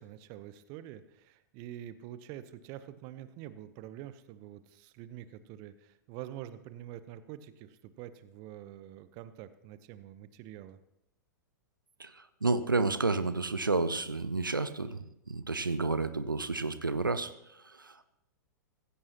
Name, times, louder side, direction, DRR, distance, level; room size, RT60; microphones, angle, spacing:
voice 1, 0.0-10.8, right 12 dB, 35° right, 14 dB, 0.8 m, -46 dB
voice 2, 12.0-18.2, right 3 dB, 85° right, 13 dB, 0.6 m, -31 dB
15.5 x 15.5 x 2.9 m, 0.82 s
figure-of-eight pair, 100°, 11 cm